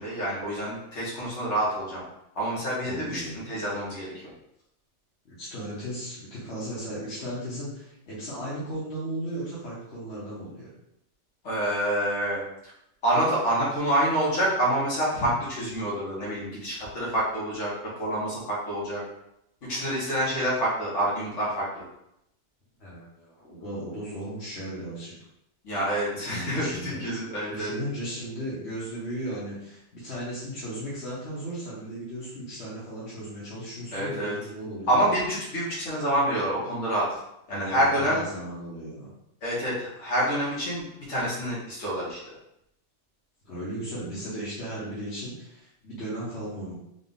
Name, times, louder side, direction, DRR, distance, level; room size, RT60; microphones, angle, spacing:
voice 1, 0.0-2.0 2.3-4.1 11.4-12.7 13.0-17.7 18.0-19.0 19.7-21.8 25.6-27.7 33.9-34.4 34.9-37.1 37.5-38.2 39.4-42.2, right 1 dB, 75° left, -7 dB, 1.6 m, -27 dB
voice 2, 2.8-3.5 5.2-10.7 22.8-25.1 26.1-27.0 27.5-35.0 37.5-39.1 43.4-46.7, right 1 dB, 60° left, -9 dB, 1.3 m, -36 dB
3.9 x 2.4 x 3.9 m, 0.80 s
omnidirectional pair, 1.3 m